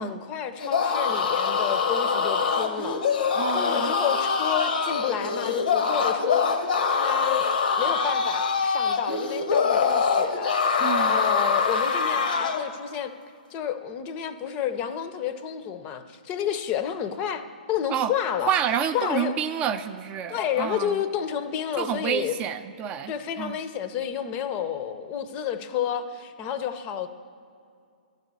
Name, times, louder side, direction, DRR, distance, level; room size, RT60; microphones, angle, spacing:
voice 1, 0.0-6.5 6.9-7.5 7.8-10.5 11.1-13.1 13.5-18.5 18.9-19.3 20.3-22.3 23.1-27.1, left 9 dB, 30° left, 10 dB, 0.6 m, -30 dB
sound 1, 0.6-12.7, left 5 dB, 70° left, 0.8 m, -24 dB
voice 2, 3.3-3.9 10.8-11.2 17.9-18.1 18.4-21.0 21.8-23.6, right 9 dB, 25° right, 9 dB, 0.4 m, -29 dB
12.0 x 4.1 x 8.1 m, 2.3 s
hypercardioid pair, 135°, 5 cm